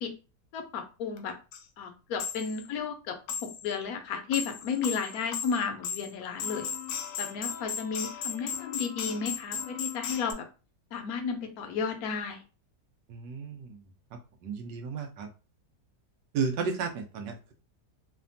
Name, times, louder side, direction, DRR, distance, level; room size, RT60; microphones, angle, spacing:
voice 1, 0.5-1.3 1.8-3.2 3.4-6.7 7.2-10.4 10.9-12.4, left 6 dB, 70° left, 6 dB, 1.0 m, -33 dB
sound 1, 1.2-1.3 1.5-1.6 2.2-2.7 3.3-3.7 4.1-10.3, left 7 dB, 90° left, 1.2 m, -36 dB
voice 2, 13.1-13.9 14.4-15.3 16.3-17.5, right 5 dB, 85° right, 5 dB, 1.3 m, -33 dB
3.3 x 2.2 x 2.5 m, 0.33 s
omnidirectional pair, 1.8 m